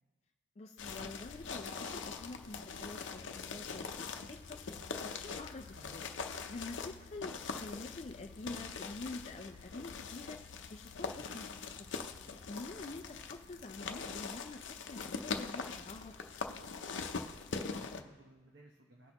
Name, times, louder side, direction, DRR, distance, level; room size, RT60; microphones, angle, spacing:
voice 1, 0.6-4.6 5.0-6.1 6.5-10.4 10.7-11.5 12.5-16.1, left 2 dB, 35° left, 4 dB, 0.4 m, -47 dB
sound 1, 0.8-18.0, left 5 dB, 80° left, 0.6 m, -42 dB
voice 2, 5.7-6.0 13.1-13.3 17.6-19.1, right 1 dB, 65° right, 1 dB, 0.9 m, -59 dB
18.5 x 6.2 x 3.0 m, 1.3 s
head